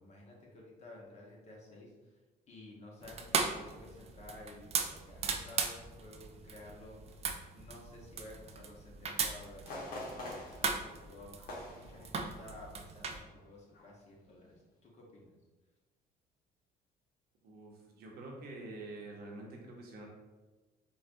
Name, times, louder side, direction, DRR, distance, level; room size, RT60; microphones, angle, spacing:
voice 1, 0.0-2.2 2.5-7.3 7.5-11.4 11.7-15.4, left 2 dB, 40° left, -2 dB, 1.0 m, -53 dB
sound 1, 3.0-13.2, right 5 dB, 40° right, 0.4 m, -38 dB
sound 2, 9.6-12.7 13.0-13.3 13.7-14.1 14.5-14.6, left 1 dB, 60° left, 1.1 m, -46 dB
voice 2, 17.4-20.1, right 2 dB, 65° right, 0 dB, 0.9 m, -47 dB
4.6 x 2.3 x 2.5 m, 1.2 s
cardioid pair, 110°, 17 cm